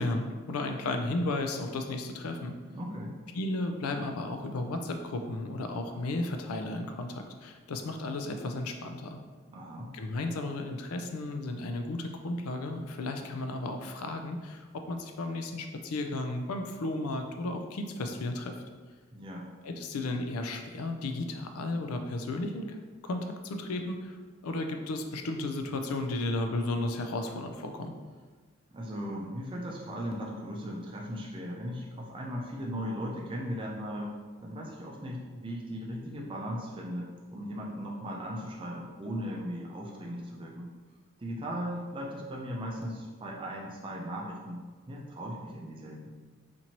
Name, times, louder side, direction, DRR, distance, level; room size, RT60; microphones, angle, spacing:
voice 1, 0.0-2.6 3.3-9.2 9.9-18.6 19.6-24.2 24.4-27.9, left 2 dB, 85° left, 6 dB, 0.4 m, -34 dB
voice 2, 2.7-3.2 9.5-9.9 19.1-19.5 28.7-34.1 34.4-40.7 41.2-46.1, equal, 25° right, -1 dB, 0.5 m, -37 dB
4.3 x 2.6 x 2.9 m, 1.4 s
head